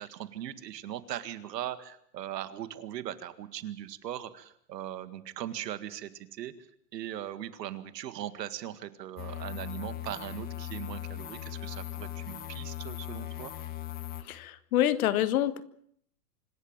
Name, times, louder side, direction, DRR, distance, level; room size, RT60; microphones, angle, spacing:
voice 1, 0.0-6.5 6.9-13.5, right 11 dB, 80° right, 13 dB, 2.0 m, -39 dB
sound 1, 9.2-14.2, left 13 dB, 20° left, 1.1 m, -39 dB
voice 2, 14.2-15.6, left 12 dB, 60° left, 15 dB, 1.5 m, -27 dB
25.5 x 13.5 x 8.9 m, 0.67 s
supercardioid pair, 160°, 49 cm